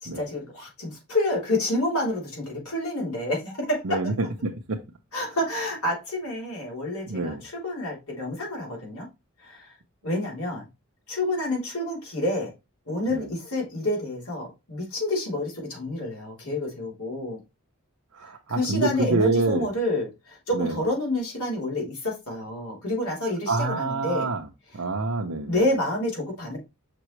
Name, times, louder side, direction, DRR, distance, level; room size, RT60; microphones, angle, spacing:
voice 1, 0.0-4.0 5.1-9.1 9.4-9.8 10.0-10.7 11.1-12.5 12.9-17.4 18.2-24.3 24.7-24.8 25.5-26.6, left 1 dB, 75° left, 3.6 m, -28 dB
voice 2, 3.8-4.8 7.1-7.4 13.1-13.2 18.2-19.7 20.6-20.7 23.5-24.4 24.7-25.5, right 3 dB, 70° right, 0.8 m, -26 dB
6.0 x 5.4 x 3.2 m
head